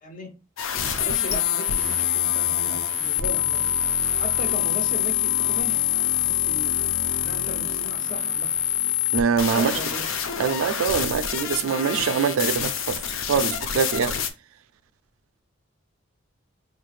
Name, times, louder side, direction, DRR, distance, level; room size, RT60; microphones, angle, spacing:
voice 1, 0.0-0.3 0.7-3.9 4.2-5.8 6.1-6.9 7.2-8.5 9.5-10.1, left 1 dB, 40° left, 0.9 m, -37 dB
sound 1, 0.6-14.3, left 9 dB, 70° left, 0.6 m, -25 dB
sound 2, 0.6-5.6, left 12 dB, 5° right, 0.7 m, -46 dB
voice 2, 9.1-9.8 10.4-13.0 13.3-14.1, right 6 dB, 80° right, 0.4 m, -23 dB
4.8 x 3.1 x 2.4 m
head